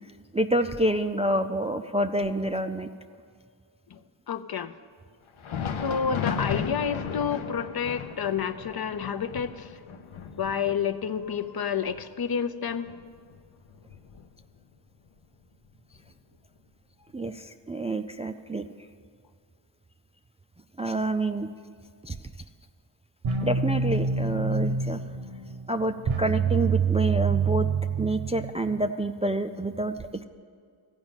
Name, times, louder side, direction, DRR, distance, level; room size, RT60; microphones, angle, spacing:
voice 1, 0.3-2.9 17.1-18.7 20.8-21.5 22.0-22.2 23.4-25.0 25.7-27.7 28.0-30.2, right 1 dB, 15° right, 7 dB, 0.3 m, -28 dB
voice 2, 4.3-4.7 5.8-9.7 10.4-12.9, left 7 dB, 50° left, 10 dB, 0.6 m, -29 dB
Thunder, 5.3-14.7 15.1-15.2 15.9-16.1 17.1-17.2, left 6 dB, 80° left, 0.8 m, -36 dB
sound 1, 23.2-28.8, right 5 dB, 85° right, 1.0 m, -26 dB
14.5 x 5.2 x 8.9 m, 2.2 s
wide cardioid pair, 70°, 47 cm